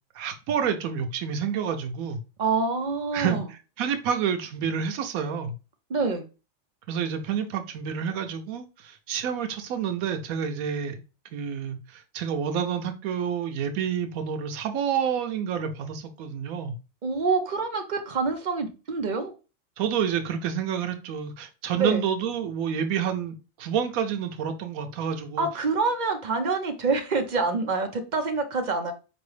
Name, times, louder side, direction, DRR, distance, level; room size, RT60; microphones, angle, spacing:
voice 1, 0.1-2.2 3.1-5.5 6.9-11.0 11.3-16.7 19.8-25.5, right 7 dB, 90° right, 7 dB, 1.1 m, -29 dB
voice 2, 2.4-3.4 5.9-6.3 17.0-19.3 21.8-22.0 25.4-28.9, right 4 dB, 50° right, 5 dB, 0.6 m, -26 dB
4.5 x 3.0 x 3.1 m, 0.31 s
omnidirectional pair, 1.4 m